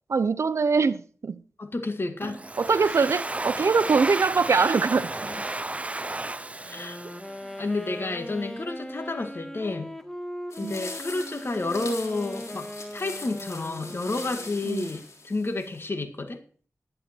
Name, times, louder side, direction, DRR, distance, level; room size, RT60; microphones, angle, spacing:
voice 1, 0.1-1.4 2.6-5.1 10.6-10.8 14.6-14.9, right 4 dB, 75° right, 0.7 m, -23 dB
voice 2, 1.6-2.4 6.7-7.0 7.6-9.9 10.6-16.4, left 2 dB, 50° left, 1.9 m, -30 dB
Domestic sounds home sounds, 2.2-7.8, right 2 dB, 25° right, 0.6 m, -33 dB
Wind instrument woodwind instrument, 6.6-14.7, equal, 10° left, 1.3 m, -39 dB
sound 1, 10.5-15.8, left 3 dB, 80° left, 3.5 m, -41 dB
12.0 x 9.9 x 4.5 m
cardioid pair, 55°, 5 cm